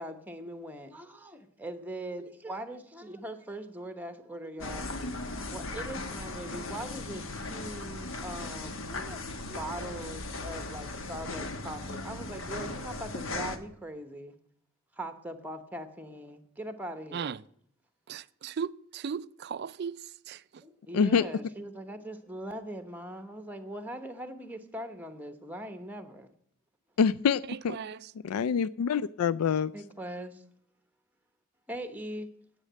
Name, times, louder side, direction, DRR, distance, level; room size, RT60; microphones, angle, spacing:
voice 1, 0.0-14.3 15.0-17.4 20.6-26.3 29.7-30.4 31.7-32.3, right 1 dB, 10° right, 1.0 m, -41 dB
sound 1, 4.6-13.6, left 2 dB, 65° left, 1.2 m, -37 dB
voice 2, 18.1-20.6 27.5-28.1, right 6 dB, 50° right, 0.3 m, -37 dB
voice 3, 20.9-21.2 27.0-27.7 28.2-29.7, left 6 dB, 90° left, 0.3 m, -26 dB
9.8 x 8.3 x 7.4 m
head